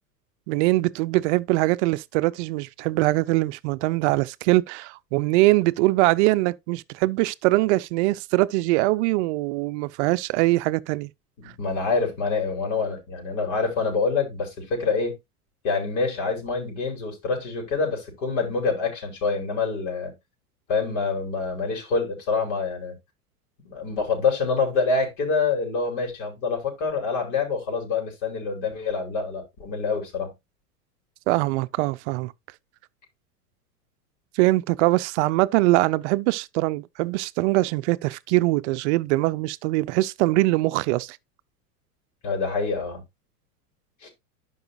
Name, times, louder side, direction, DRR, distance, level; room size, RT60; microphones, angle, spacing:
voice 1, 0.5-11.1 31.3-32.3 34.4-41.2, right 20 dB, 50° right, 0.6 m, -22 dB
voice 2, 11.4-15.2 15.6-20.1 20.7-22.9 23.6-30.3 42.2-43.0 44.0-44.1, left 4 dB, 55° left, 5.2 m, -26 dB
11.5 x 5.5 x 2.8 m
hypercardioid pair, 95°, 46 cm